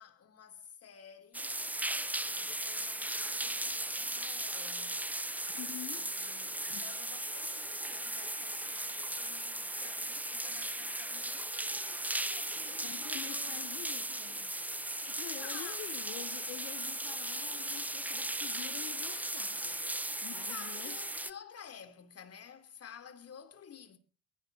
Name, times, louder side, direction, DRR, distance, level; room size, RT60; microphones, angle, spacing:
voice 1, 0.0-1.6 2.2-5.0 5.7-13.7 14.1-14.4 15.0-15.8 20.4-24.0, left 8 dB, 55° left, 3.1 m, -52 dB
sound 1, 1.3-21.3, right 1 dB, 5° right, 0.6 m, -37 dB
voice 2, 5.5-6.1 6.7-6.8 12.8-14.5 14.9-19.8 20.2-21.0, left 17 dB, 90° left, 0.7 m, -47 dB
23.0 x 16.0 x 2.7 m
cardioid pair, 90°, 30 cm